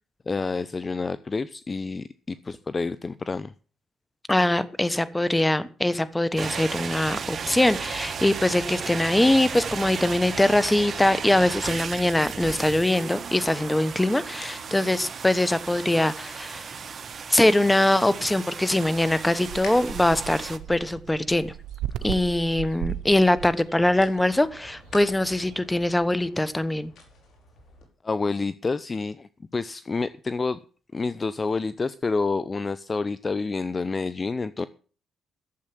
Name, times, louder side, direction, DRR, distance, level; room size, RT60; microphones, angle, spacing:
voice 1, 0.3-3.5 22.0-22.1 28.0-30.6 30.9-34.7, left 4 dB, 30° left, 15 dB, 0.6 m, -28 dB
voice 2, 4.3-16.7 17.3-21.5 22.0-26.9, left 1 dB, 10° left, 15 dB, 1.1 m, -22 dB
sound 1, 6.4-20.6, right 6 dB, 45° right, 1.3 m, -35 dB
sound 2, 10.3-27.9, left 2 dB, 65° left, 5.2 m, -50 dB
sound 3, 18.8-25.6, right 12 dB, 85° right, 0.7 m, -38 dB
12.5 x 7.4 x 7.5 m, 0.39 s
cardioid pair, 90°, 0 cm